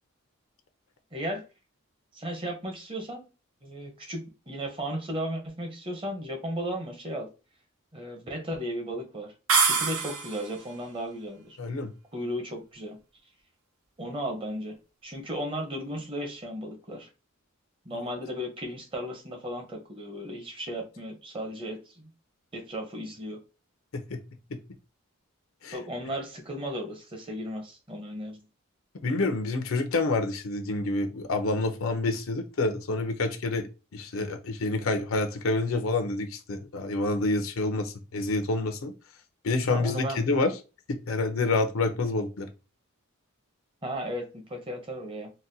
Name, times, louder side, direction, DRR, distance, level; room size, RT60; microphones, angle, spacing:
voice 1, 1.1-1.4 2.1-3.2 3.6-4.2 4.5-7.3 7.9-9.3 9.7-11.6 12.1-13.0 14.0-14.8 15.0-17.1 17.9-22.1 22.5-23.4 25.7-28.4 39.6-40.2 43.8-45.3, equal, 25° right, 0.7 m, -35 dB
sound 1, 9.5-10.6, right 5 dB, 80° right, 0.7 m, -24 dB
voice 2, 11.6-11.9 23.9-24.2 24.5-24.6 25.6-25.8 29.0-38.9 39.4-40.6 40.9-42.5, left 3 dB, 75° left, 0.6 m, -28 dB
3.9 x 2.2 x 2.6 m
head